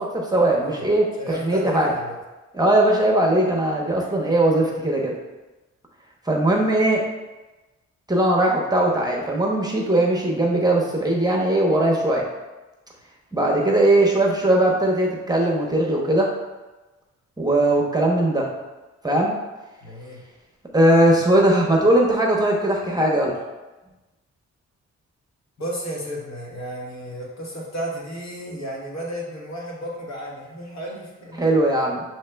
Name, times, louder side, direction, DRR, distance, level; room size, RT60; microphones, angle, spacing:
voice 1, 0.0-1.1 1.4-1.9 2.5-5.1 6.3-7.0 8.1-12.3 13.3-16.3 17.4-18.5 19.0-19.3 20.7-23.3 31.4-32.0, right 1 dB, 15° right, -2 dB, 0.8 m, -19 dB
voice 2, 1.2-2.2 19.8-20.2 25.6-31.5, right 1 dB, 60° left, -3 dB, 1.3 m, -33 dB
7.1 x 3.1 x 2.2 m, 1.1 s
cardioid pair, 70°, 30 cm